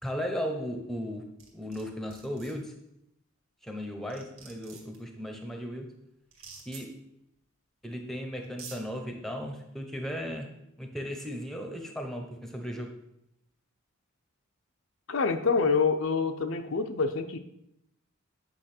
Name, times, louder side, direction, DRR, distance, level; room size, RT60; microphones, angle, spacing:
voice 1, 0.0-2.8 3.6-6.0 6.7-7.0 7.8-13.0, equal, ahead, 4 dB, 0.9 m, -36 dB
sound 1, 1.4-1.8 2.1-2.5 3.7-3.8 4.1-5.0 6.3-6.8 7.9-8.0 8.4-8.8, right 5 dB, 70° right, 2.0 m, -47 dB
voice 2, 15.1-17.4, left 5 dB, 65° left, 7 dB, 0.6 m, -26 dB
8.8 x 5.6 x 4.4 m, 0.79 s
head